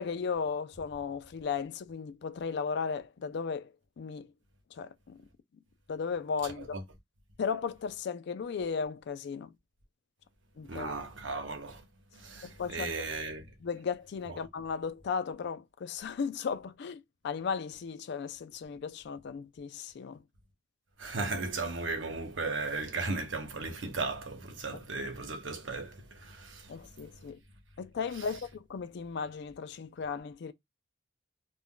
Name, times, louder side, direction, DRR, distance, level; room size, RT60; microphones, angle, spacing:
voice 1, 0.0-4.3 4.7-5.2 5.9-6.8 7.4-9.5 10.6-10.9 12.4-12.9 13.6-20.2 24.7-24.8 26.7-27.4 27.8-30.5, left 5 dB, 60° left, 0.3 m, -36 dB
voice 2, 10.7-11.8 12.1-13.5 21.0-26.7, right 3 dB, 75° right, 0.9 m, -36 dB
2.4 x 2.2 x 3.7 m
head